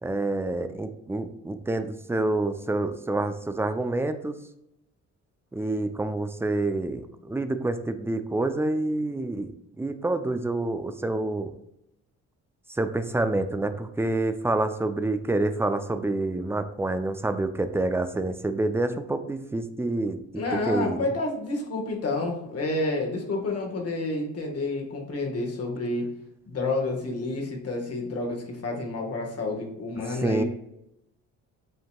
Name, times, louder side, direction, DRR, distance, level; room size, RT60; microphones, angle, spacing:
voice 1, 0.0-4.4 5.5-11.5 12.7-21.1 30.1-30.4, right 2 dB, 10° right, 9 dB, 0.4 m, -28 dB
voice 2, 20.3-26.1 26.5-30.4, left 2 dB, 55° left, 1 dB, 1.4 m, -29 dB
7.8 x 2.8 x 2.2 m, 0.81 s
cardioid pair, 90°, 30 cm